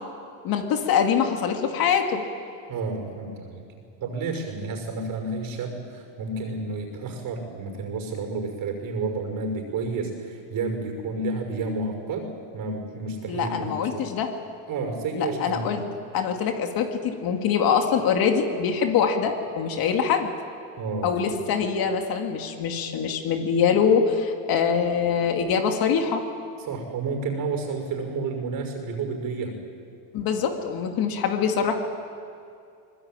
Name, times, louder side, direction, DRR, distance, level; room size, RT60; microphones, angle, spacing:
voice 1, 0.4-2.2 13.3-14.3 15.1-15.8 16.1-20.3 21.0-26.2 30.1-31.7, left 6 dB, 50° left, 4 dB, 2.5 m, -24 dB
voice 2, 2.7-3.6 4.0-14.1 14.7-15.7 20.8-21.4 26.7-29.6, right 3 dB, 45° right, 4 dB, 5.9 m, -31 dB
23.5 x 19.5 x 9.1 m, 2.4 s
supercardioid pair, 120°, 46 cm